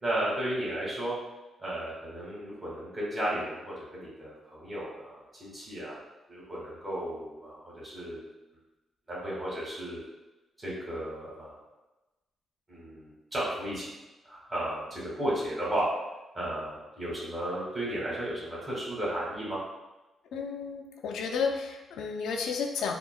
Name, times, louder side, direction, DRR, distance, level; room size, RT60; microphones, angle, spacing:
voice 1, 0.0-1.1 1.6-6.0 6.3-8.2 9.1-10.0 10.6-11.6 12.7-13.9 14.2-15.8 16.3-19.6, right 1 dB, 25° right, -7 dB, 1.4 m, -34 dB
voice 2, 20.3-22.9, left 5 dB, 90° left, 3 dB, 0.4 m, -32 dB
3.6 x 2.1 x 2.3 m, 1.1 s
cardioid pair, 125°, 0 cm